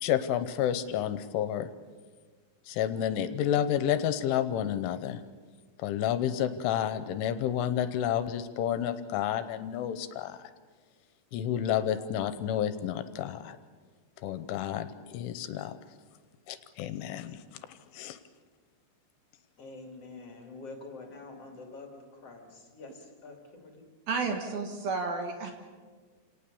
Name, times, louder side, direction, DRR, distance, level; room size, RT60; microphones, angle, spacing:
voice 1, 0.0-1.7 2.7-5.2 5.8-10.5 11.3-13.6 14.2-15.8 16.5-17.4 17.9-18.2, left 10 dB, 80° left, 12 dB, 3.2 m, -30 dB
voice 2, 19.6-23.9, left 3 dB, 35° left, 3 dB, 3.0 m, -46 dB
voice 3, 24.1-25.5, right 4 dB, 60° right, 4 dB, 3.0 m, -31 dB
28.5 x 18.5 x 7.0 m, 1.5 s
omnidirectional pair, 5.8 m